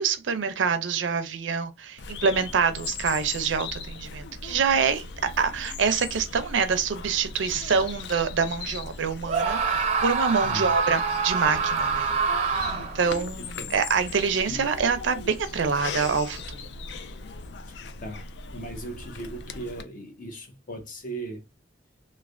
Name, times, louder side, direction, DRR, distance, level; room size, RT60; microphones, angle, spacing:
voice 1, 0.0-5.0 5.4-12.2 12.7-16.7, right 5 dB, 90° right, 0.5 m, -26 dB
Bird vocalization bird call bird song, 2.0-19.8, left 4 dB, 65° left, 0.4 m, -39 dB
Screaming, 9.3-13.1, right 5 dB, 35° right, 0.5 m, -26 dB
voice 2, 10.4-10.7 13.4-13.8 14.5-14.7 17.7-21.4, right 1 dB, 45° left, 0.7 m, -38 dB
3.2 x 2.1 x 2.5 m
head